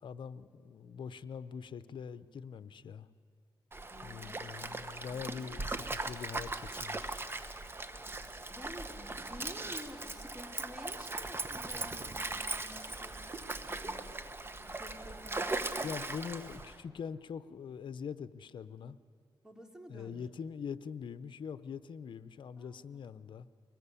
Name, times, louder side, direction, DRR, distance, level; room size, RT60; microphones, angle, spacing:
voice 1, 0.0-3.1 4.0-7.1 15.8-19.0 19.9-23.5, left 7 dB, 65° left, 14 dB, 0.8 m, -43 dB
Stream, 3.7-16.8, right 2 dB, 25° right, 1.4 m, -39 dB
voice 2, 3.9-4.4 4.7-4.8 5.1-5.4 8.5-13.3 13.6-14.2 14.4-16.2 19.4-20.2 22.6-23.1, equal, 5° right, 3 dB, 3.1 m, -51 dB
24.0 x 19.5 x 8.4 m, 2.3 s
cardioid pair, 80°, 9 cm